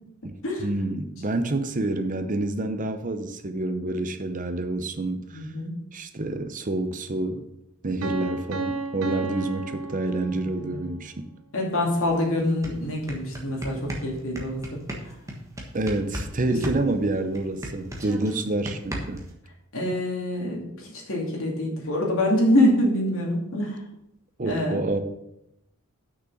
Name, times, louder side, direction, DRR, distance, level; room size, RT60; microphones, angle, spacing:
voice 1, 0.2-5.4 5.9-7.5 7.8-11.3 15.7-19.2 24.4-25.0, right 2 dB, 35° right, 9 dB, 0.7 m, -28 dB
voice 2, 5.3-5.7 10.2-10.8 11.5-14.8 16.5-16.6 19.7-23.8 24.4-24.7, left 1 dB, 65° left, -1 dB, 2.5 m, -25 dB
Piano, 8.0-10.8, right 3 dB, 70° right, 0.9 m, -32 dB
sound 1, 12.1-12.2 12.5-16.3 16.6-19.3, equal, 15° right, 1.3 m, -35 dB
6.2 x 6.2 x 6.8 m, 0.82 s
head